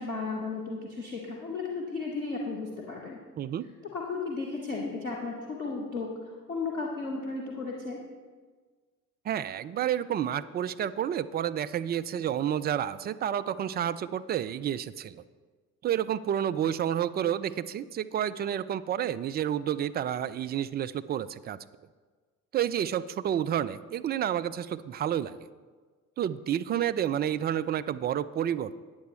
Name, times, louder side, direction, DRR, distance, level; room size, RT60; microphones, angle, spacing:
voice 1, 0.0-3.2 3.9-6.1 6.5-8.0, left 3 dB, 85° left, 0 dB, 1.0 m, -34 dB
voice 2, 3.4-3.7 9.2-15.2 15.8-21.6 22.5-25.4 26.2-28.8, right 10 dB, 25° right, 13 dB, 0.4 m, -30 dB
14.5 x 9.3 x 3.2 m, 1.4 s
figure-of-eight pair, 50°, 42 cm